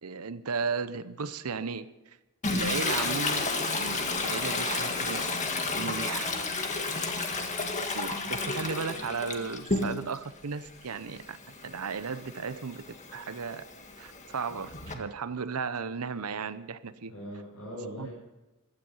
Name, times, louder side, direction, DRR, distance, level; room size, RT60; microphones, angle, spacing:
voice 1, 0.0-2.2 2.5-5.4 5.8-6.3 7.9-13.6 14.0-17.1 18.0-18.1, right 5 dB, 80° right, 14 dB, 0.8 m, -35 dB
Toilet flush, 2.4-10.2 10.6-14.9, left 3 dB, 35° left, 1.8 m, -32 dB
voice 2, 6.9-7.6 17.1-18.1, equal, 80° left, -5 dB, 6.0 m, -42 dB
16.0 x 12.5 x 5.6 m, 1.1 s
head